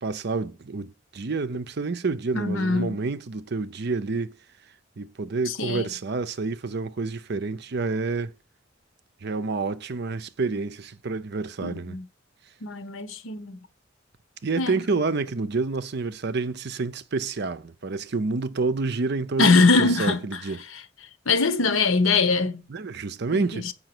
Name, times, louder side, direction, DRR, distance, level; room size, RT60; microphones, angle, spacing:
voice 1, 0.0-4.3 5.0-8.3 9.2-12.0 14.4-20.6 22.7-23.7, right 3 dB, 55° right, 0.6 m, -28 dB
voice 2, 2.3-3.0 5.5-5.9 11.6-12.0 12.6-13.6 14.6-14.8 19.4-20.2 20.7-20.8 21.3-22.6 23.3-23.7, left 3 dB, 80° left, 1.1 m, -22 dB
7.7 x 5.7 x 6.0 m
head